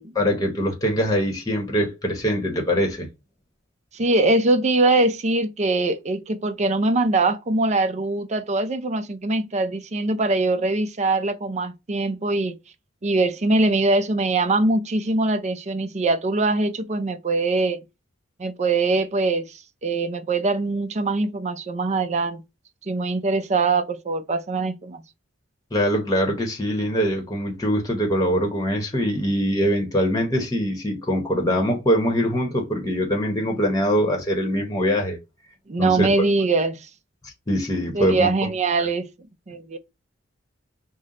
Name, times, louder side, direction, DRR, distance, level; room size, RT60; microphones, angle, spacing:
voice 1, 0.1-3.1 25.7-35.2 35.8-36.3 37.5-38.3, equal, 20° left, 0.9 m, -23 dB
voice 2, 3.9-12.6 13.0-17.8 18.4-22.4 22.8-25.0 35.7-36.9 37.9-39.1 39.5-39.8, right 2 dB, 35° right, 0.5 m, -22 dB
5.4 x 2.1 x 3.7 m
head